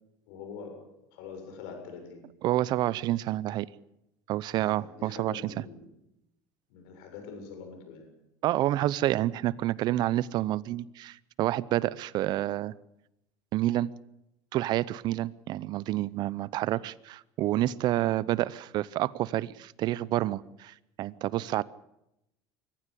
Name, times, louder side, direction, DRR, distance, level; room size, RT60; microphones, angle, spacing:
voice 1, 0.3-0.8 1.1-2.2 4.8-5.9 6.7-8.1, left 5 dB, 80° left, 5 dB, 7.2 m, -44 dB
voice 2, 2.4-3.7 4.3-5.6 8.4-12.7 13.5-13.9 14.5-21.6, right 14 dB, 55° right, 21 dB, 0.7 m, -29 dB
23.0 x 15.0 x 8.5 m, 0.84 s
supercardioid pair, 125°, 9 cm